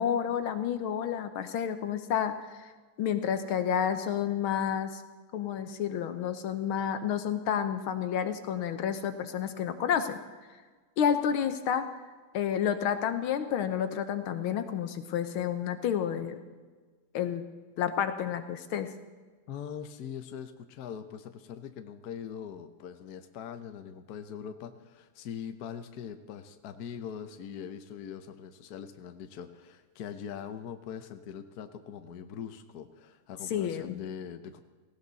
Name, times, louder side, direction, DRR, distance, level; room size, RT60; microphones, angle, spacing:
voice 1, 0.0-2.7 3.0-4.9 5.3-10.2 11.0-11.9 12.3-16.4 17.1-17.4 17.8-18.9 33.5-34.0, left 8 dB, 75° left, 9 dB, 1.7 m, -30 dB
voice 2, 19.5-34.6, left 8 dB, 55° left, 8 dB, 1.2 m, -42 dB
18.0 x 16.5 x 4.1 m, 1.4 s
omnidirectional pair, 2.4 m